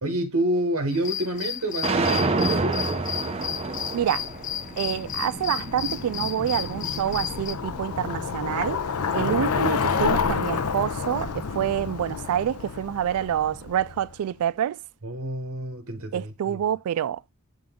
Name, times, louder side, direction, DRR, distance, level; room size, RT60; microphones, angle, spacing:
voice 1, 0.0-3.1 9.1-9.4 15.0-16.6, right 1 dB, 70° right, 1.1 m, -28 dB
sound 1, 0.9-7.5, left 10 dB, 35° left, 0.3 m, -33 dB
sound 2, 1.8-8.0, right 3 dB, 30° right, 0.6 m, -29 dB
Bicycle, 3.3-14.2, left 5 dB, 90° left, 0.6 m, -30 dB
voice 2, 3.9-4.2 4.8-8.8 9.1-14.8 16.1-17.2, right 10 dB, 90° right, 0.3 m, -27 dB
7.7 x 3.8 x 3.6 m
head